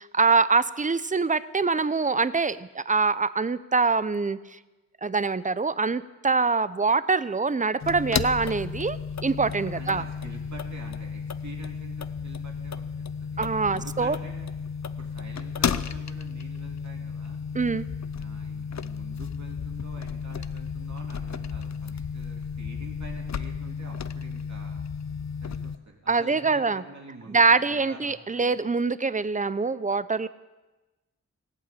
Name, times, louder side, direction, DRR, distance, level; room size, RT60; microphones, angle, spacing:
voice 1, 0.0-4.6 5.0-10.0 13.4-14.2 17.5-17.9 26.1-26.8 27.3-30.3, right 4 dB, 25° right, 16 dB, 0.6 m, -24 dB
sound 1, 7.8-25.8, left 6 dB, 65° left, 0.6 m, -33 dB
voice 2, 9.7-14.5 15.0-17.4 18.2-24.8 25.4-28.7, right 3 dB, 70° right, 0 dB, 3.2 m, -47 dB
18.5 x 8.7 x 8.4 m, 1.1 s
wide cardioid pair, 95°, 29 cm